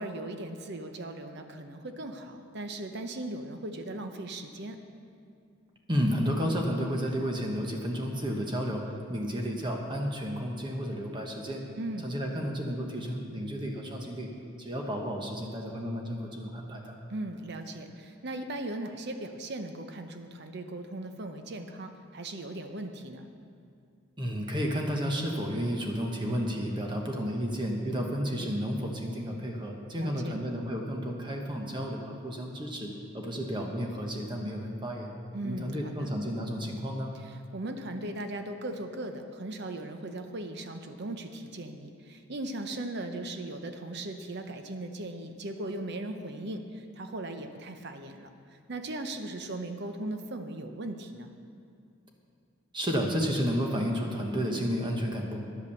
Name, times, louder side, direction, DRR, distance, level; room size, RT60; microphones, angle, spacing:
voice 1, 0.0-4.8 11.8-12.1 17.1-23.3 30.0-30.4 35.3-36.1 37.2-48.3 48.7-51.3, right 1 dB, 55° right, 7 dB, 0.8 m, -38 dB
voice 2, 5.9-11.6 12.0-14.3 14.6-16.9 24.2-35.1 35.4-37.1 52.7-55.4, equal, 25° right, 1 dB, 1.2 m, -32 dB
10.5 x 8.2 x 7.0 m, 2.4 s
head